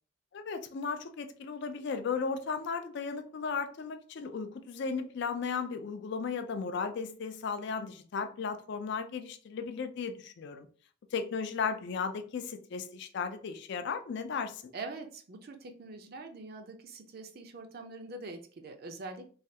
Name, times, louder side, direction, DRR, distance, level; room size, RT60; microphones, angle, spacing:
voice 1, 0.3-10.7 11.1-14.7, left 5 dB, 55° left, 8 dB, 0.4 m, -35 dB
voice 2, 14.7-19.3, right 3 dB, 50° right, 6 dB, 0.5 m, -44 dB
3.2 x 2.3 x 2.7 m, 0.42 s
head